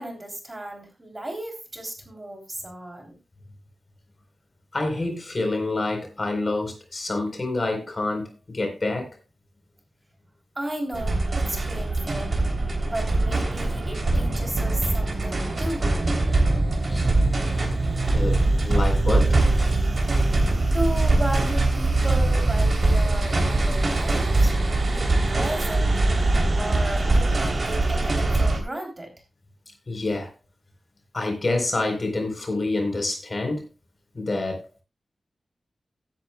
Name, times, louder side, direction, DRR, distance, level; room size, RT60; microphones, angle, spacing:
voice 1, 0.0-3.1 10.6-12.3 12.9-16.0 20.7-24.6 24.9-26.0 26.6-29.1, right 1 dB, 25° right, 3.4 m, -34 dB
voice 2, 4.7-9.1 16.9-17.1 18.1-19.4 29.9-30.3 31.1-33.6 34.1-34.7, left 2 dB, 40° left, 4.1 m, -27 dB
sound 1, 10.9-28.6, right 2 dB, 45° right, 3.3 m, -22 dB
16.0 x 10.5 x 2.3 m
wide cardioid pair, 110°, 0 cm